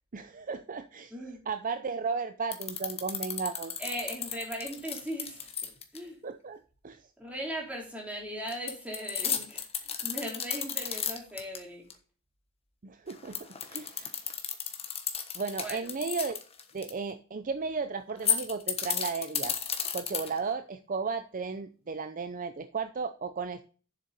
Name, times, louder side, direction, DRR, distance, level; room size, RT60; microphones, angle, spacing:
voice 1, 0.1-1.1 1.5-3.7 6.2-7.1 12.8-14.1 15.3-16.4 16.7-19.6 19.9-23.6, right 5 dB, 40° right, 10 dB, 0.5 m, -35 dB
voice 2, 1.1-1.4 3.8-6.2 7.2-11.9 15.6-15.9, equal, 5° right, -2 dB, 3.2 m, -39 dB
sound 1, 2.5-6.0 8.5-11.6 11.9-12.0 13.1-16.9 18.1-20.5, left 8 dB, 30° left, 1.2 m, -33 dB
7.5 x 6.8 x 6.7 m, 0.39 s
head